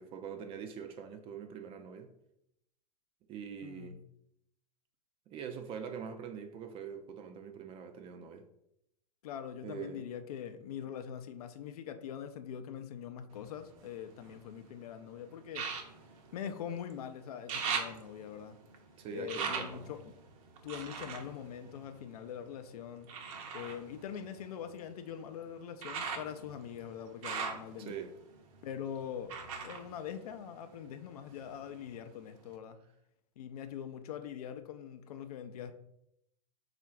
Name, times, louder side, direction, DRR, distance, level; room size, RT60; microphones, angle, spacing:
voice 1, 0.0-2.1 3.3-4.0 5.3-8.5 9.6-10.1 19.0-19.9 27.8-28.1, right 7 dB, 25° right, 0.4 m, -43 dB
voice 2, 3.6-4.0 9.2-15.7 16.3-18.6 19.1-20.1 20.6-23.1 23.5-28.0 28.6-29.3 29.6-32.8 33.4-35.7, left 8 dB, 65° left, 0.5 m, -43 dB
sound 1, 13.3-14.7 15.5-17.0 17.3-22.4 23.1-30.9 31.2-32.1 32.5-32.6, right 6 dB, 55° right, 0.7 m, -41 dB
3.6 x 2.5 x 4.3 m
hypercardioid pair, 100°, 21 cm